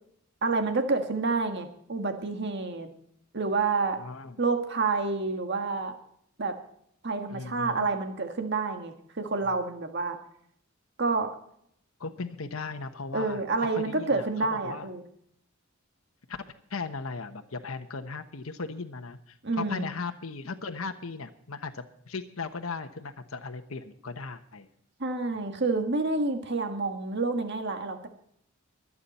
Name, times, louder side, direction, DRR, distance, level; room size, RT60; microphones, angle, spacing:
voice 1, 0.4-2.9 3.3-4.0 4.4-5.9 6.4-6.5 7.0-10.2 11.0-11.3 13.1-15.0 19.4-19.9 25.0-28.1, right 3 dB, 55° right, 6 dB, 1.7 m, -28 dB
voice 2, 4.0-4.4 7.3-7.9 12.0-14.9 16.3-16.4 16.7-24.7 25.4-25.5, left 4 dB, 85° left, 6 dB, 1.1 m, -37 dB
23.5 x 8.7 x 4.3 m, 0.67 s
head